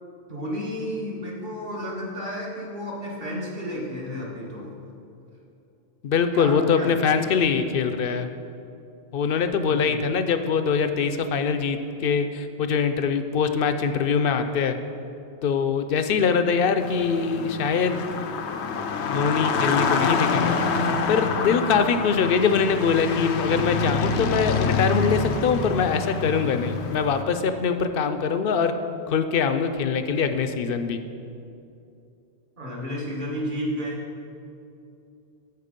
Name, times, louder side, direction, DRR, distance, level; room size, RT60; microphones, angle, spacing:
voice 1, 0.3-4.7 6.3-7.3 9.6-10.1 32.6-34.0, equal, 50° right, -4 dB, 1.8 m, -32 dB
voice 2, 6.0-8.3 9.1-14.8 15.4-18.0 19.1-28.7 29.1-31.0, left 6 dB, 65° left, 9 dB, 0.7 m, -23 dB
sound 1, 16.8-27.2, left 4 dB, 90° left, 0.9 m, -26 dB
13.5 x 4.8 x 5.2 m, 2.7 s
omnidirectional pair, 1.1 m